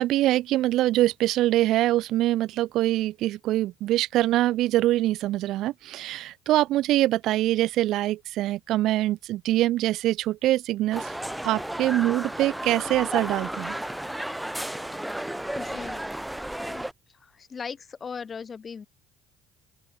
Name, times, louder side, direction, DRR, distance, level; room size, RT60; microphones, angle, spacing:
voice 1, 0.0-11.1 11.4-13.8, right 15 dB, 60° right, 0.5 m, -24 dB
sound 1, 10.9-16.9, right 1 dB, 5° right, 3.2 m, -33 dB
voice 2, 15.6-16.1 16.6-16.8 17.2-18.9, left 6 dB, 35° left, 2.6 m, -38 dB
open air
hypercardioid pair, 60°, 0 cm